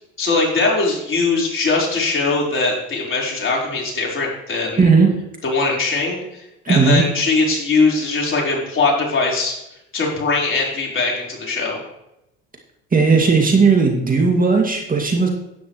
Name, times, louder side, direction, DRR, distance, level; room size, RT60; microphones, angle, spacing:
voice 1, 0.2-4.9 5.4-6.4 6.7-9.6 9.9-11.8, left 3 dB, 35° left, -2 dB, 4.3 m, -20 dB
voice 2, 4.8-5.1 6.7-7.0 12.9-15.3, right 4 dB, 25° right, 1 dB, 2.2 m, -15 dB
12.0 x 9.4 x 3.1 m, 0.86 s
hypercardioid pair, 75°, 33 cm